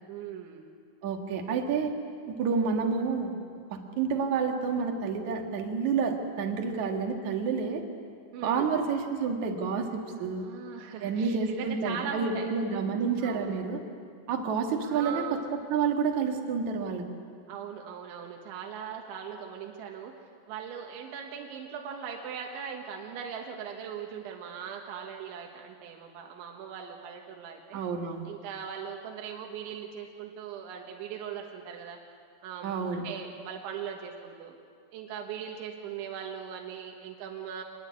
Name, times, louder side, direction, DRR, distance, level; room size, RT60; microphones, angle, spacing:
voice 1, 0.1-0.7 8.3-8.7 10.3-12.5 13.2-13.5 14.8-15.5 17.5-20.1 20.5-27.8 28.3-32.0 32.4-34.6 34.9-37.6, right 7 dB, 90° right, 2 dB, 3.9 m, -40 dB
voice 2, 1.0-1.9 2.3-3.3 3.7-7.8 8.4-10.5 11.0-13.8 14.3-17.0 27.7-28.3 32.6-33.0, right 5 dB, 50° right, 2 dB, 2.8 m, -29 dB
25.5 x 21.0 x 8.5 m, 2.3 s
omnidirectional pair, 5.1 m